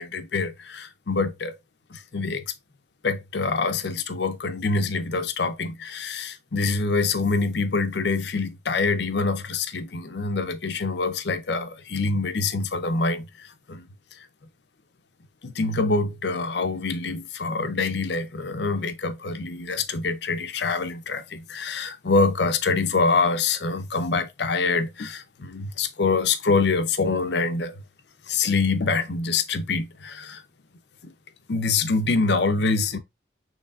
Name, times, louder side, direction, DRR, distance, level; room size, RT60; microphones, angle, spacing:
voice 1, 0.0-1.6 1.9-2.5 3.0-13.9 14.1-14.3 15.4-27.7 28.3-30.4 31.0-31.1 31.5-33.0, left 4 dB, 70° left, 0.6 m, -25 dB
6.5 x 3.2 x 2.4 m
head